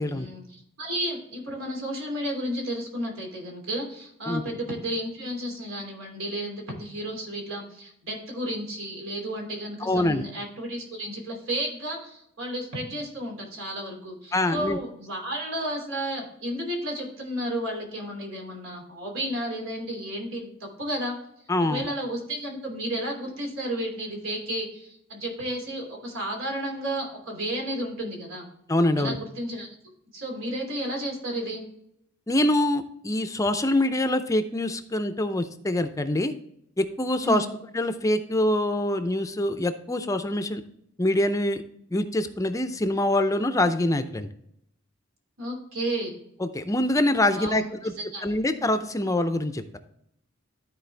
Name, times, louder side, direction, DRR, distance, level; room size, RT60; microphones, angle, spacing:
voice 1, 0.0-21.1 21.7-28.5 29.0-29.7 30.1-31.6 37.2-37.5 45.4-46.2 47.4-48.3, right 1 dB, 85° right, 0 dB, 3.0 m, -32 dB
voice 2, 9.8-10.2 14.3-14.8 21.5-21.9 28.7-29.2 32.3-36.3 36.8-37.5 37.7-40.6 41.0-41.6 41.9-44.3 46.4-47.9 48.2-49.6, left 1 dB, 15° left, 9 dB, 0.5 m, -25 dB
13.0 x 4.5 x 3.3 m, 0.72 s
head